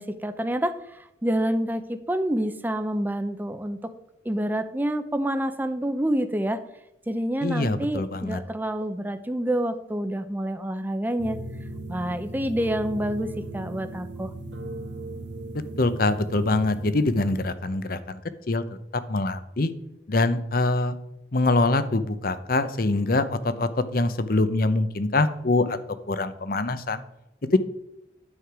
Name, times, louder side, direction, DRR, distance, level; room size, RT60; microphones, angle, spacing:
voice 1, 0.0-3.9 4.2-6.6 7.1-11.4 11.9-14.3, right 1 dB, 10° right, 9 dB, 0.5 m, -28 dB
voice 2, 7.4-8.4 15.8-18.2 18.5-18.6 19.1-19.7 20.1-20.9 21.3-25.8 26.1-27.0 27.5-27.6, left 2 dB, 55° left, 12 dB, 0.8 m, -24 dB
sound 1, 11.2-17.5, right 2 dB, 80° right, 1.3 m, -37 dB
9.8 x 7.7 x 4.8 m, 0.87 s
head